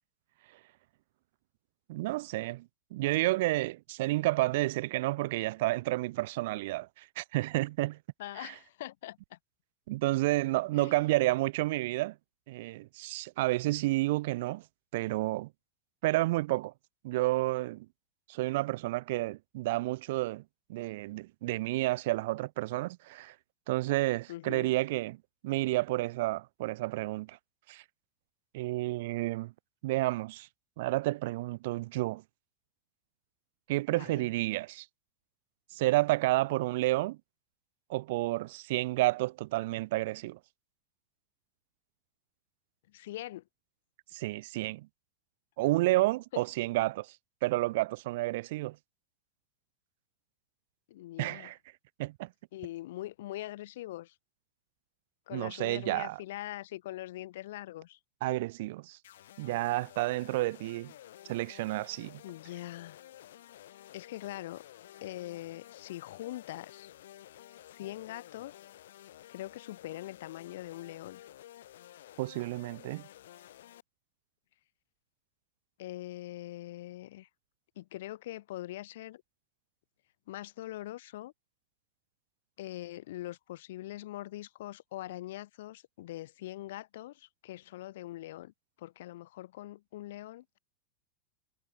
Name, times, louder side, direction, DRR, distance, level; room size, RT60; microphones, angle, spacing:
voice 1, 1.9-8.0 8.4-8.5 9.9-12.2 12.5-14.6 14.9-15.5 16.0-16.7 17.0-17.9 18.3-20.4 20.7-23.3 23.7-25.2 25.4-27.4 27.7-27.8 28.5-29.5 29.8-30.5 30.8-32.2 33.7-34.8 35.7-37.2 37.9-40.4 44.1-44.9 45.6-47.1 47.4-48.8 51.2-51.6 52.0-52.3 55.3-56.2 58.2-59.0 59.4-60.9 61.3-62.2 72.2-73.0, right 19 dB, 55° right, 3.3 m, -30 dB
voice 2, 8.2-9.4 10.7-11.1 24.3-24.7 33.9-34.3 42.9-43.4 46.3-46.4 50.9-51.5 52.5-54.1 55.3-58.0 62.2-63.0 63.9-64.7 65.0-66.9 67.8-68.6 69.3-71.2 75.8-77.3 77.8-79.2 80.3-81.3 82.6-88.5 88.8-90.6, left 15 dB, 65° left, 3.6 m, -42 dB
sound 1, 59.0-73.8, left 12 dB, 85° left, 5.1 m, -53 dB
supercardioid pair, 170°, 0 cm